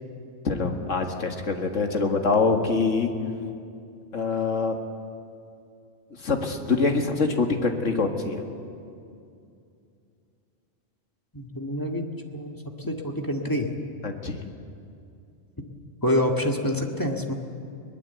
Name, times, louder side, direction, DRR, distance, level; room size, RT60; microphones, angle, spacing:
voice 1, 0.4-3.1 4.1-4.8 6.2-8.4 14.0-14.4, left 4 dB, 70° left, 4 dB, 2.1 m, -24 dB
voice 2, 11.3-12.0 12.3-12.6 12.9-13.7 16.0-17.3, left 1 dB, 15° left, 1 dB, 1.8 m, -26 dB
22.5 x 20.0 x 8.2 m, 2.5 s
omnidirectional pair, 1.3 m